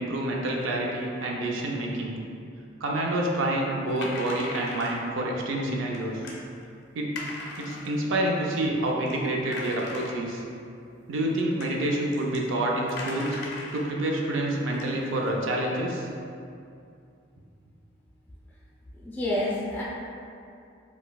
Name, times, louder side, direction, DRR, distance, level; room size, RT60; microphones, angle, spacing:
voice 1, 0.0-2.2 2.8-6.1 6.9-7.1 7.6-10.4 11.1-13.4 13.7-16.1, right 1 dB, 85° right, -1 dB, 0.5 m, -28 dB
sound 1, 4.0-5.1 5.9-6.4 7.1-8.0 8.6-8.7 9.1-9.2 9.5-10.5 11.3-11.4 11.6-11.7 12.1-12.4 12.9-13.9 14.3-14.4 14.7-15.3, left 2 dB, 55° left, 0.4 m, -39 dB
voice 2, 19.0-19.8, left 1 dB, 10° left, -7 dB, 0.6 m, -28 dB
3.9 x 2.3 x 2.3 m, 2.5 s
head